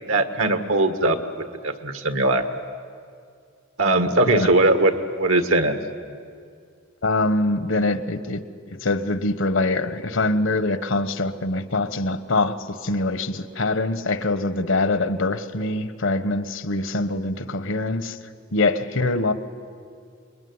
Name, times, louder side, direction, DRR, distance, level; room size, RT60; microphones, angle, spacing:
voice 1, 0.1-1.2 1.6-2.4 3.8-4.9 5.2-5.8, right 2 dB, 80° right, 8 dB, 1.8 m, -20 dB
voice 2, 7.0-8.4 8.7-18.2 18.5-19.3, left 2 dB, 65° left, 13 dB, 1.2 m, -24 dB
27.5 x 22.0 x 9.7 m, 2.3 s
head